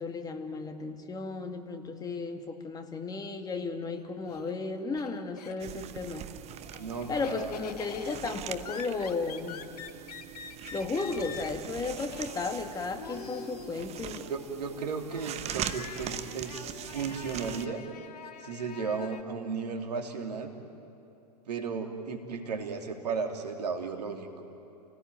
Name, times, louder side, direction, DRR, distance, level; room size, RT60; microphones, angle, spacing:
voice 1, 0.0-6.3 7.1-9.7 10.7-14.3, left 4 dB, 20° left, 6 dB, 2.2 m, -34 dB
Laughter, 3.8-5.9 6.3-19.2, left 7 dB, 65° left, 1.4 m, -46 dB
sound 1, 5.6-17.7, right 10 dB, 30° right, 1.1 m, -42 dB
voice 2, 6.8-7.6 14.3-17.8 18.4-20.5 21.5-24.5, right 5 dB, 70° right, 4 dB, 3.0 m, -35 dB
30.0 x 19.0 x 9.2 m, 2.9 s
figure-of-eight pair, 100°, 21 cm